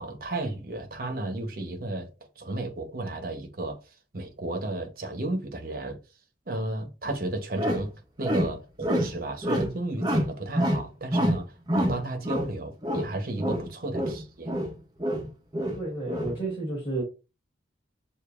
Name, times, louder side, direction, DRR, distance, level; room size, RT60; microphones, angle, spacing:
voice 1, 0.0-2.1 2.4-3.8 4.1-6.0 6.5-7.9 8.2-11.5 11.8-14.5, right 2 dB, 50° right, 1.0 m, -33 dB
sound 1, 7.1-7.2 7.6-7.9 8.2-9.2 9.4-9.7 10.0-10.8 11.1-12.5 12.8-13.1 13.4-14.7 15.0-16.4, equal, 25° right, 0.9 m, -27 dB
voice 2, 15.8-17.0, right 2 dB, 30° left, 2.7 m, -31 dB
6.8 x 2.7 x 2.5 m
head